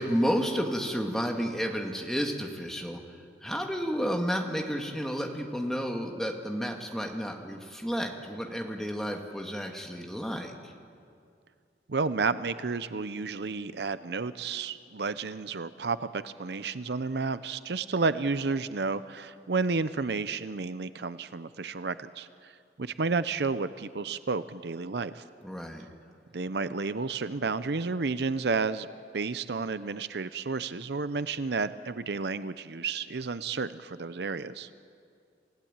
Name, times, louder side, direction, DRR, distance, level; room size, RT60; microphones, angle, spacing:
voice 1, 0.0-3.0 3.4-10.7 25.4-25.9, equal, 5° left, 2 dB, 1.8 m, -31 dB
voice 2, 11.9-22.5 22.8-25.2 26.3-28.9 29.1-34.7, right 4 dB, 70° right, 13 dB, 0.6 m, -31 dB
28.0 x 16.5 x 8.8 m, 2.3 s
head